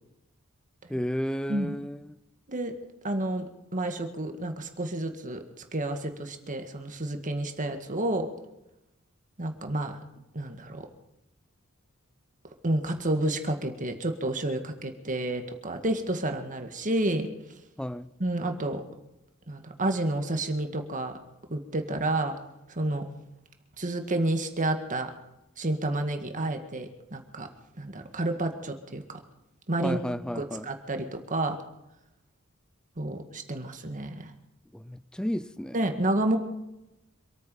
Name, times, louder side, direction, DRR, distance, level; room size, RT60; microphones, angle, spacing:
voice 1, 0.9-2.2 17.8-18.1 29.8-30.7 34.7-35.8, equal, 5° left, 0.5 m, -32 dB
voice 2, 3.0-3.4 3.7-5.4 5.7-8.3 9.4-10.0 10.3-10.8 12.6-17.3 18.2-18.8 19.5-21.1 21.5-22.4 22.7-23.0 23.8-25.1 25.6-27.5 27.8-29.2 29.7-30.0 30.4-31.6 33.0-34.3 35.7-36.4, right 1 dB, 40° right, 2.0 m, -30 dB
26.0 x 9.4 x 5.5 m
head